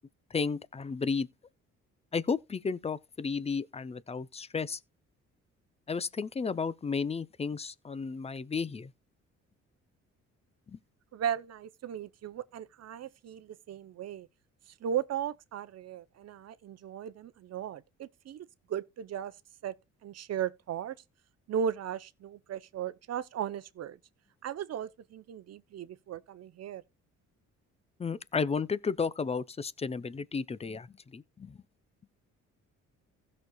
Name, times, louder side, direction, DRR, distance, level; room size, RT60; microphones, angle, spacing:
voice 1, 0.3-1.3 2.1-4.8 5.9-8.9 10.7-10.8 28.0-30.9 31.1-31.6, left 5 dB, 20° left, 0.5 m, -33 dB
voice 2, 11.1-14.3 14.7-19.3 19.6-19.7 20.0-21.0 21.5-24.0 24.4-26.8, right 8 dB, 55° right, 0.7 m, -36 dB
16.0 x 6.3 x 2.3 m
cardioid pair, 90°, 30 cm